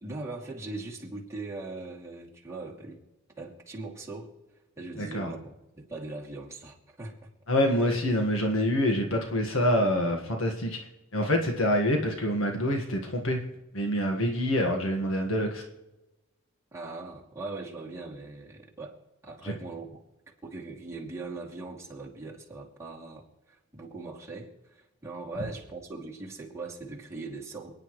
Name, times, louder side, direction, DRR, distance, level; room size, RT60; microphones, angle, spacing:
voice 1, 0.0-3.0 3.4-4.3 4.8-7.3 16.7-19.0 19.2-20.0 20.4-27.7, right 3 dB, 15° right, -4 dB, 2.7 m, -40 dB
voice 2, 5.0-5.3 7.5-10.8 11.1-13.4 13.7-15.6 19.4-19.5, left 1 dB, 70° left, 3 dB, 1.7 m, -26 dB
29.0 x 9.8 x 3.2 m, 1.0 s
head